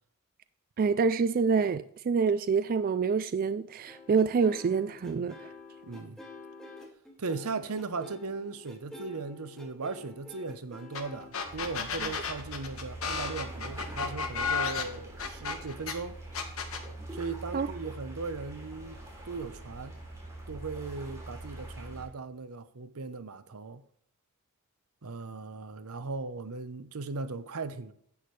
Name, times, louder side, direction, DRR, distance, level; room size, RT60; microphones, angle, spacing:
voice 1, 0.8-5.5 17.5-17.7, right 5 dB, 40° right, 0.3 m, -27 dB
sound 1, 3.9-11.3, left 2 dB, ahead, 2.0 m, -48 dB
voice 2, 5.8-6.2 7.2-16.2 17.1-19.0 19.2-20.0 20.5-23.8 25.0-27.9, right 4 dB, 80° right, 0.8 m, -38 dB
sound 2, 10.9-11.0 11.3-15.9 16.3-16.8, left 5 dB, 70° left, 1.4 m, -32 dB
sound 3, 11.5-22.1, right 1 dB, 15° right, 3.1 m, -44 dB
10.5 x 8.5 x 3.2 m
head